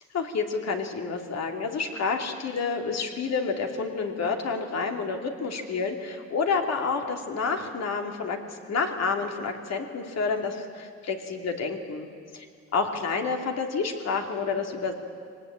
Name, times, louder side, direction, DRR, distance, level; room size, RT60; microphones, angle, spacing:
voice 1, 0.1-12.1 12.3-12.4 12.7-14.9, left 4 dB, 60° left, 3 dB, 2.7 m, -29 dB
23.5 x 19.0 x 8.8 m, 2.1 s
cardioid pair, 90°, 30 cm